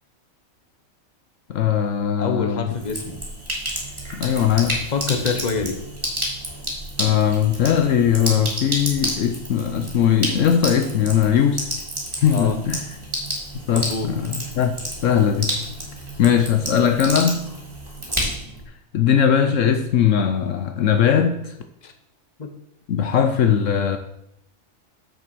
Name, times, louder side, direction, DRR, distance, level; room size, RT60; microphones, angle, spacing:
voice 1, 1.5-2.7 4.1-4.9 7.0-11.7 12.2-12.8 13.7-14.8 15.0-15.6 16.2-17.4 18.9-21.5 22.9-24.0, left 8 dB, 70° left, 1.0 m, -19 dB
voice 2, 2.2-3.2 4.6-5.8 12.3-12.6 13.7-14.1 21.8-21.9 22.4-22.5, left 4 dB, 35° left, 1.1 m, -26 dB
Sink (filling or washing), 2.7-18.6, right 1 dB, 20° right, 2.4 m, -30 dB
7.5 x 6.7 x 6.0 m
omnidirectional pair, 1.4 m